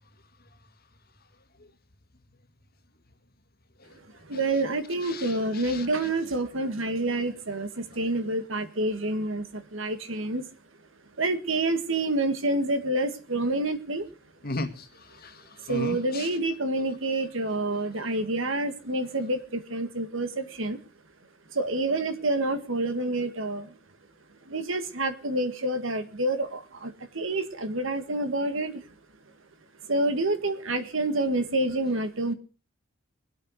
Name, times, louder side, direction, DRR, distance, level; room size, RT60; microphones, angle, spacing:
voice 1, 4.2-10.5 11.2-14.1 15.6-20.8 21.5-23.8 24.5-28.9 29.9-32.3, right 2 dB, 65° right, 10 dB, 1.8 m, -28 dB
voice 2, 5.0-5.9 14.4-16.3, left 2 dB, 45° left, 8 dB, 1.9 m, -36 dB
22.0 x 8.4 x 6.4 m, 0.37 s
head